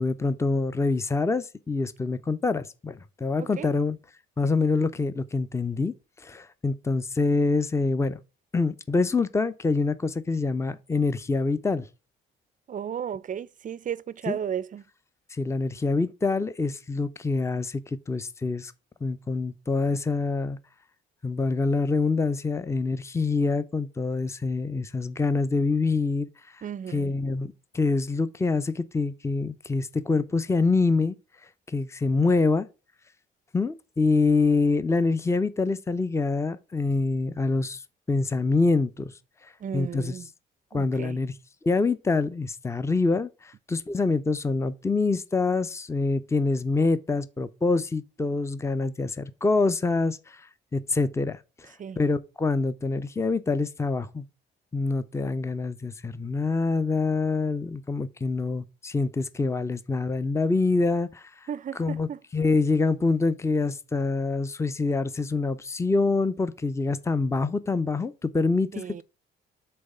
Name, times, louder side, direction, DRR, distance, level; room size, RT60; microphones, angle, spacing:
voice 1, 0.0-4.0 4.4-8.2 8.5-11.9 14.3-14.4 15.3-18.7 19.0-20.6 21.2-26.3 26.9-31.1 31.7-32.7 33.5-37.8 38.1-39.1 39.4-40.1 40.7-41.3 41.6-54.3 54.7-61.5 61.8-62.1 62.3-69.0, left 3 dB, 15° left, 0.6 m, -26 dB
voice 2, 3.4-3.7 12.7-14.8 26.6-27.1 39.6-40.3 40.7-41.2 51.8-52.0 61.5-62.2 68.7-69.0, right 8 dB, 40° right, 0.4 m, -34 dB
7.7 x 3.3 x 5.4 m
cardioid pair, 90°, 20 cm